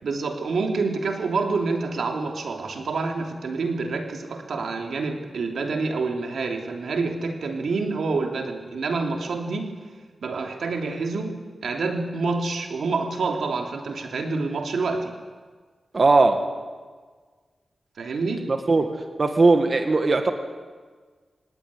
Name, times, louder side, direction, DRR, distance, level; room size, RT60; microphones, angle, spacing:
voice 1, 0.0-9.7 10.2-11.3 11.6-15.1 18.0-18.5, right 3 dB, 90° right, 3 dB, 3.0 m, -27 dB
voice 2, 15.9-16.4 18.5-18.9 19.2-20.3, right 3 dB, 45° right, 5 dB, 1.9 m, -18 dB
25.0 x 18.5 x 9.8 m, 1.5 s
wide cardioid pair, 100°, 0 cm